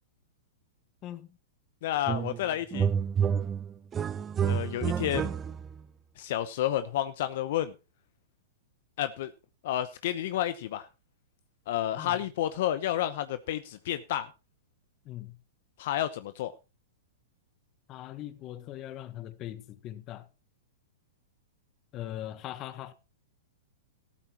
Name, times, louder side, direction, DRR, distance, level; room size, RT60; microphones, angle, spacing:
voice 1, 1.0-1.4 12.0-12.2 15.0-15.4 17.9-20.3 21.9-22.9, left 13 dB, 35° left, 1.4 m, -40 dB
voice 2, 1.8-2.9 4.4-5.3 6.2-7.7 9.0-9.3 9.6-10.9 11.7-14.3 15.8-16.5, left 12 dB, 60° left, 0.9 m, -30 dB
sound 1, 2.1-2.4 2.7-5.8, right 7 dB, 20° right, 0.9 m, -29 dB
14.5 x 13.0 x 3.0 m
hypercardioid pair, 115°, 0 cm